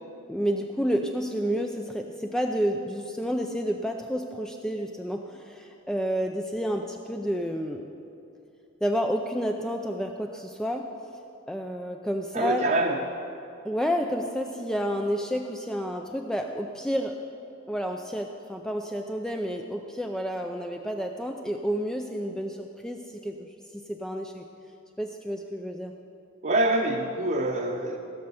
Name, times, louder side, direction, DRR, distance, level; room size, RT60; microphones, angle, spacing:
voice 1, 0.3-7.8 8.8-10.9 11.5-12.6 13.6-17.1 17.7-23.5 23.9-24.4 25.0-25.9, equal, 5° left, 3 dB, 0.4 m, -30 dB
voice 2, 12.3-13.0 26.4-28.0, right 2 dB, 45° right, -1 dB, 0.8 m, -25 dB
16.5 x 6.5 x 7.2 m, 2.8 s
head